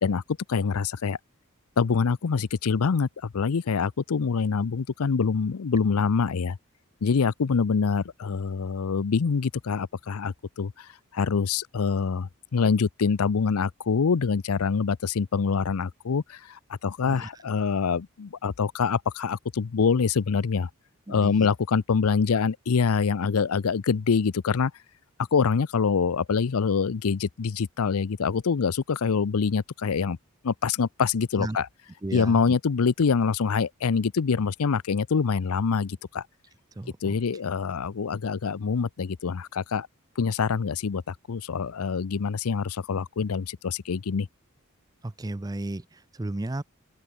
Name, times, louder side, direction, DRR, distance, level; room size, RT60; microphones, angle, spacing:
voice 1, 0.5-1.2 1.8-6.6 7.0-20.7 21.1-24.7 25.3-30.2 30.4-31.7 32.1-36.2 37.0-39.9 40.2-44.3, left 5 dB, 85° left, 0.5 m, -25 dB
voice 2, 21.1-21.5 31.4-31.6 32.0-32.5 36.8-37.1 45.0-46.6, right 2 dB, 15° right, 0.5 m, -34 dB
open air
head